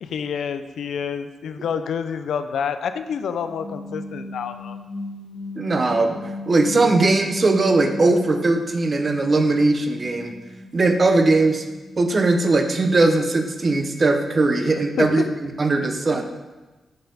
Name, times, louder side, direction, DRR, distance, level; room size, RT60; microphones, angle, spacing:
voice 1, 0.0-4.8 14.8-15.1, left 7 dB, 85° left, 10 dB, 0.3 m, -28 dB
sound 1, 3.3-8.5 8.9-15.1, left 2 dB, 40° left, 1.4 m, -38 dB
voice 2, 5.6-10.3 10.7-11.6 12.0-16.2, right 3 dB, 40° right, 6 dB, 0.7 m, -19 dB
6.4 x 4.2 x 4.0 m, 1.2 s
cardioid pair, 75°, 0 cm